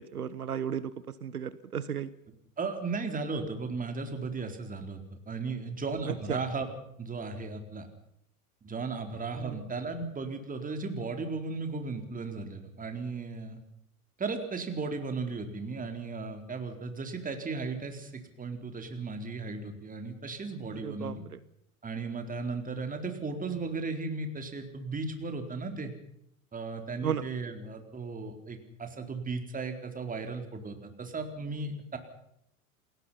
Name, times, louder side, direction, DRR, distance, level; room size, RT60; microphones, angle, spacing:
voice 1, 0.0-2.1 6.1-6.4 9.3-9.6 20.7-21.4 27.0-27.3, right 8 dB, 80° right, 17 dB, 1.1 m, -35 dB
voice 2, 2.6-6.7 7.0-7.9 8.6-13.6 14.2-21.2 21.8-25.9 26.5-32.0, right 4 dB, 20° right, 6 dB, 4.2 m, -36 dB
29.0 x 21.0 x 5.8 m, 0.75 s
figure-of-eight pair, 90°, 44 cm